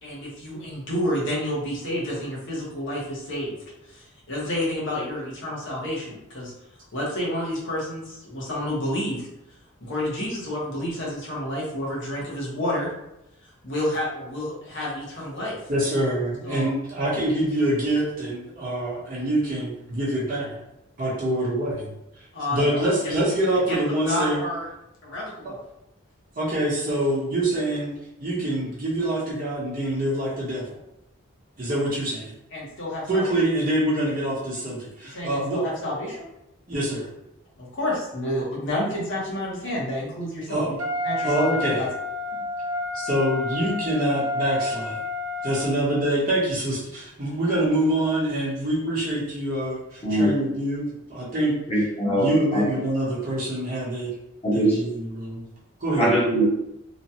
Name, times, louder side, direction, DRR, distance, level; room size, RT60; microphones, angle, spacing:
voice 1, 0.0-3.5 3.9-6.5 6.9-9.3 9.8-12.9 13.6-15.6 16.4-16.7 22.3-23.1 23.7-23.8 24.0-24.7 25.0-25.6 32.5-33.3 35.0-36.2 37.6-40.6 41.0-41.4 41.8-41.9, left 1 dB, 60° left, -5 dB, 1.0 m, -29 dB
voice 2, 15.7-20.6 21.0-21.9 22.5-24.4 25.4-25.5 26.4-27.9 28.2-30.8 31.6-32.3 33.1-35.6 36.7-37.1 40.5-40.7 41.2-41.8 42.9-44.9 45.4-51.5 52.2-54.1 54.5-55.4 55.8-56.1, right 1 dB, 40° right, -7 dB, 0.9 m, -25 dB
Wind instrument woodwind instrument, 40.8-46.1, left 2 dB, 85° right, 0.6 m, -30 dB
voice 3, 50.0-50.4 51.7-52.6 54.4-54.8 56.0-56.4, right 1 dB, 30° left, -7 dB, 1.1 m, -21 dB
3.1 x 2.2 x 2.8 m, 0.86 s
head